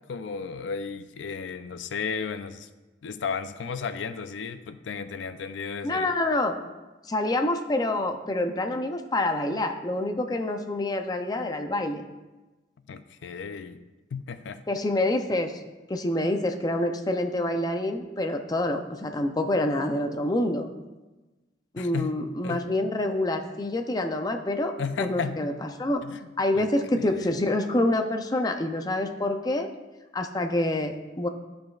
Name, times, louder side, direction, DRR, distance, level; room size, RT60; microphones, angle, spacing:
voice 1, 0.1-2.7 3.0-6.1 12.9-13.8 14.1-14.6 21.8-22.2 22.4-22.6 24.8-25.4 26.0-26.2 26.5-26.7 27.0-27.3, left 5 dB, 85° left, 11 dB, 0.4 m, -34 dB
voice 2, 5.8-6.6 7.0-12.0 14.7-15.5 15.9-20.7 21.7-24.7 25.0-26.0 26.4-29.7 30.1-31.3, left 1 dB, 20° left, 5 dB, 0.4 m, -27 dB
12.0 x 5.1 x 2.4 m, 1.1 s
head